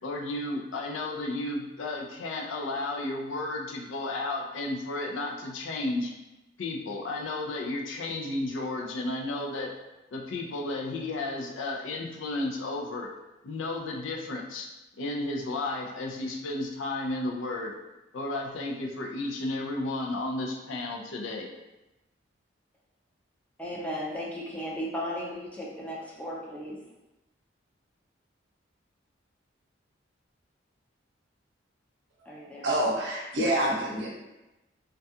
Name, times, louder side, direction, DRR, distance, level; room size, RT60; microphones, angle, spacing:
voice 1, 0.0-6.1 6.6-9.7 10.1-13.1 13.4-14.7 15.0-17.7 18.1-21.5, left 2 dB, 85° left, 0 dB, 0.4 m, -33 dB
voice 2, 23.6-26.8 32.3-32.7, equal, 5° left, -5 dB, 0.4 m, -35 dB
voice 3, 32.3-34.1, right 1 dB, 70° right, -4 dB, 0.7 m, -27 dB
2.3 x 2.2 x 2.7 m, 0.99 s
head